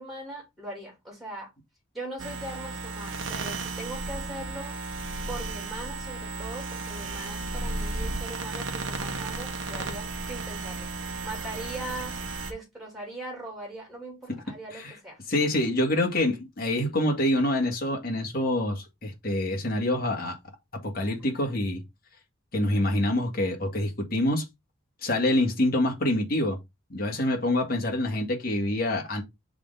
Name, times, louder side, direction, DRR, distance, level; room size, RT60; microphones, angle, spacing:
voice 1, 0.0-1.5 1.9-4.8 5.3-10.9 11.2-15.2, right 1 dB, ahead, 3.1 m, -40 dB
sound 1, 2.2-12.5, right 3 dB, 60° right, 1.3 m, -34 dB
voice 2, 15.3-20.4 20.8-21.8 22.5-24.4 25.0-26.6 26.9-29.2, left 1 dB, 45° left, 2.1 m, -26 dB
6.7 x 3.8 x 3.9 m
head